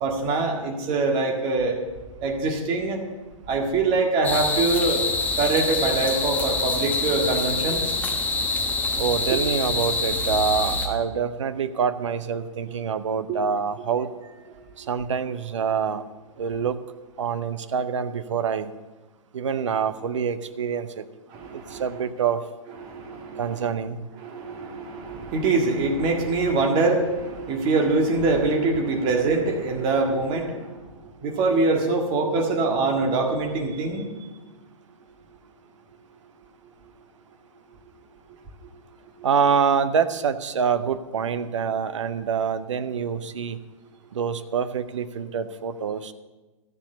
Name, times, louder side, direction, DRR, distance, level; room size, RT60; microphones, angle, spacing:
voice 1, 0.0-1.8 2.2-3.0 3.5-5.0 5.4-7.8 13.3-13.4 21.3-22.0 22.8-23.5 24.2-30.8 31.2-34.1, right 3 dB, 30° right, 2 dB, 1.8 m, -24 dB
sound 1, 4.2-10.9, left 3 dB, 10° left, 1.2 m, -25 dB
voice 2, 9.0-14.1 14.8-16.0 16.4-16.8 17.2-18.7 19.3-21.0 21.5-22.4 23.4-24.1 39.2-43.6 44.1-46.1, right 6 dB, 60° right, 12 dB, 0.8 m, -26 dB
13.5 x 7.2 x 6.7 m, 1.2 s
figure-of-eight pair, 115°, 18 cm